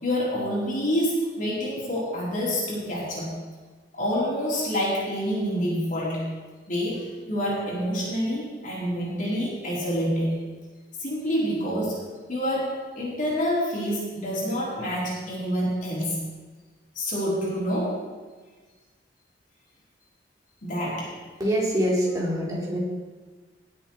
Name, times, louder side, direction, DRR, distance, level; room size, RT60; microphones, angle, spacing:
voice 1, 0.0-3.3 3.9-6.3 6.7-10.4 11.0-12.0 12.3-16.2 17.0-18.0 20.6-21.1, equal, 50° left, -6 dB, 4.0 m, -27 dB
voice 2, 21.4-22.8, equal, 20° right, -5 dB, 3.7 m, -24 dB
18.0 x 7.7 x 4.6 m, 1.4 s
head